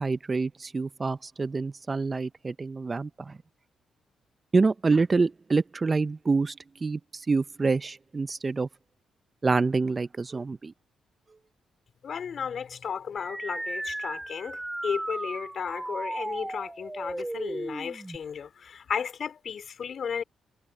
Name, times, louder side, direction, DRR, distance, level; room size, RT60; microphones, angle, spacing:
voice 1, 0.0-3.4 4.5-8.7 9.4-10.7, right 4 dB, 35° right, 0.5 m, -27 dB
voice 2, 12.0-20.2, left 7 dB, 60° left, 3.9 m, -34 dB
sound 1, 13.2-18.2, right 1 dB, 15° right, 3.7 m, -35 dB
cardioid pair, 70°, 0 cm